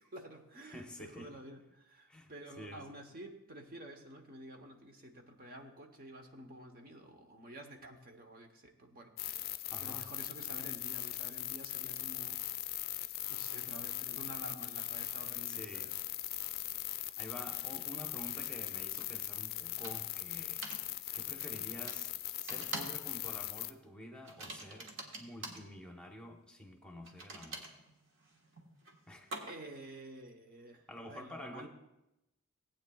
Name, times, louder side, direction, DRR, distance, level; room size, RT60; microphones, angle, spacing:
voice 1, 0.0-9.3 9.8-12.4 13.3-15.9 29.5-31.7, right 1 dB, 45° right, 4 dB, 0.9 m, -50 dB
voice 2, 0.7-1.3 2.1-2.3 2.6-2.8 9.7-10.1 15.5-15.9 17.2-20.6 21.1-22.1 22.4-24.9 25.2-27.7 29.1-29.3 30.9-31.7, left 1 dB, 5° left, 1 dB, 1.0 m, -49 dB
sound 1, 9.2-23.7, left 14 dB, 45° left, 0.4 m, -40 dB
sound 2, 19.0-19.1 19.8-20.2 20.6-20.8 21.9-22.0 22.5-23.1 23.3-23.6 24.2-25.7 27.0-29.8, right 2 dB, 60° right, 1.4 m, -45 dB
18.0 x 8.7 x 2.3 m, 0.90 s
head